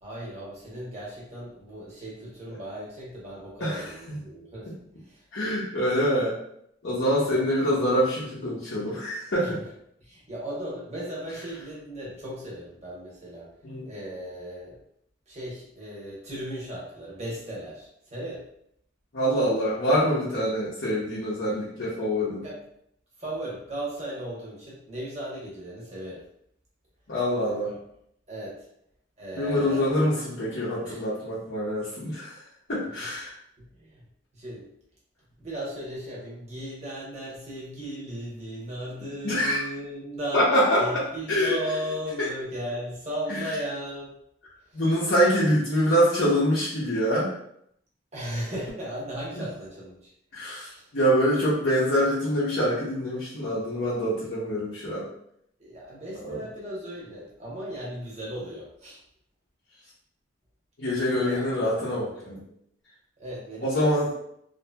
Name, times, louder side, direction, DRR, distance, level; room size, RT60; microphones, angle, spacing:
voice 1, 0.0-4.7 5.0-5.2 7.2-7.5 9.4-9.7 10.0-13.5 13.9-14.8 15.3-18.4 22.4-22.6 23.2-26.2 27.5-27.8 28.3-28.6 29.2-29.9 30.8-31.0 33.0-33.1 33.6-34.0 34.3-34.7 35.4-40.4 40.8-44.1 44.7-44.8 48.1-50.1 50.8-50.9 55.6-59.0 61.2-61.6 63.2-64.0, right 1 dB, 35° right, -6 dB, 0.9 m, -36 dB
voice 2, 3.6-4.2 5.3-6.4 6.8-9.6 13.6-13.9 19.1-22.4 27.1-27.7 29.4-32.4 32.7-33.4 39.2-39.6 40.3-41.6 42.2-42.3 43.3-43.5 44.7-47.3 50.3-55.0 56.2-56.4 60.8-62.4 63.6-64.1, equal, 60° left, -9 dB, 0.7 m, -25 dB
2.7 x 2.6 x 2.2 m, 0.73 s
head